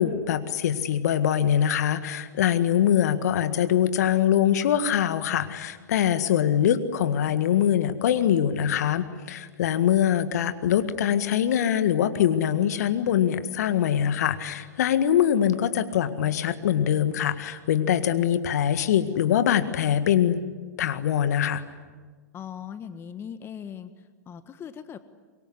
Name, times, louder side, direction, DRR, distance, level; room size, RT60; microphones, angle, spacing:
voice 1, 0.0-20.4 20.8-21.6, left 9 dB, 65° left, 11 dB, 1.7 m, -23 dB
voice 2, 22.3-23.9 24.3-25.0, left 8 dB, 25° left, 12 dB, 1.4 m, -39 dB
25.5 x 22.5 x 9.8 m, 1.4 s
hypercardioid pair, 100°, 10 cm